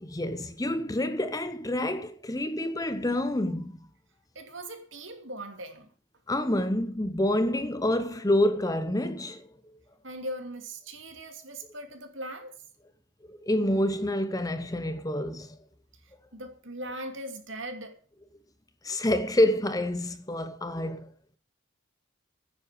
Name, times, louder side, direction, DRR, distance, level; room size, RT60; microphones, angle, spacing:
voice 1, 0.0-3.8 6.3-9.4 13.3-15.6 18.8-21.1, left 1 dB, 15° left, 0.8 m, -27 dB
voice 2, 4.3-5.9 10.0-12.5 16.3-18.0, right 1 dB, 65° right, 2.7 m, -39 dB
9.7 x 8.2 x 8.6 m
head